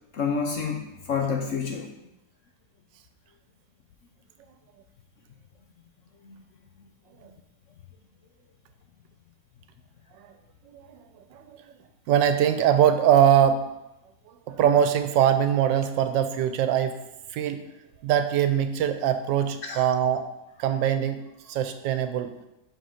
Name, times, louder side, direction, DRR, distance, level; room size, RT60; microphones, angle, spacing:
voice 1, 0.1-1.9 6.2-6.4 19.6-19.9, left 5 dB, 60° left, 3 dB, 0.9 m, -28 dB
voice 2, 12.1-13.7 14.5-17.0 17.3-17.6 18.0-20.3 20.6-21.2 21.5-22.3, right 9 dB, 90° right, 9 dB, 1.3 m, -22 dB
5.5 x 5.3 x 5.6 m, 0.92 s
omnidirectional pair, 1.9 m